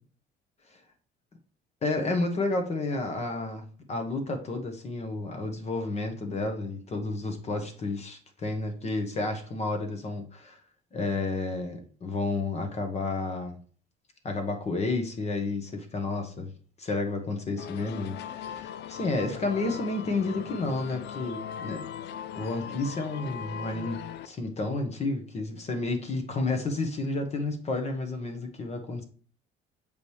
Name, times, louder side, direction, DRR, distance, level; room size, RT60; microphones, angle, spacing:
voice 1, 1.8-10.6 10.9-13.6 14.2-16.5 16.8-21.8 22.4-29.0, left 3 dB, 35° left, 1.3 m, -31 dB
sound 1, 17.6-24.3, left 9 dB, 60° left, 0.5 m, -39 dB
7.1 x 5.1 x 3.2 m
cardioid pair, 140°, 20 cm